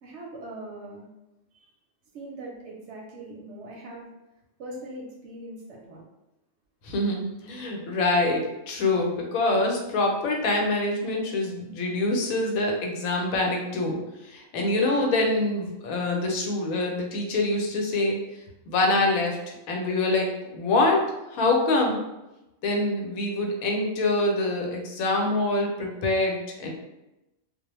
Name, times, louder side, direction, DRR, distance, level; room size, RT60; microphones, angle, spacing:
voice 1, 0.0-1.1 1.5-1.6 2.1-4.1 4.6-6.0, right 1 dB, 65° right, -2 dB, 0.8 m, -41 dB
voice 2, 6.8-14.0 14.2-18.2 18.7-19.4 19.7-21.0 21.3-22.0 22.6-26.7, left 2 dB, 85° left, 1 dB, 1.0 m, -25 dB
2.3 x 2.0 x 3.0 m, 0.96 s
omnidirectional pair, 1.4 m